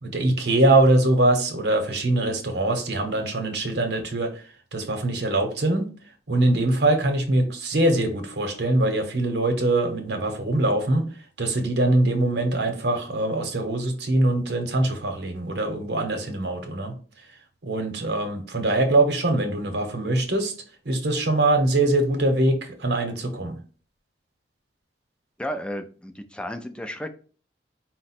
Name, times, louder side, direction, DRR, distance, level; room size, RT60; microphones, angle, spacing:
voice 1, 0.0-4.4 4.7-5.9 6.3-11.1 11.4-16.9 17.6-20.5 20.8-23.6, right 2 dB, 70° right, 5 dB, 0.9 m, -23 dB
voice 2, 25.4-27.1, equal, 5° left, 8 dB, 0.3 m, -33 dB
4.8 x 2.1 x 4.2 m, 0.41 s
head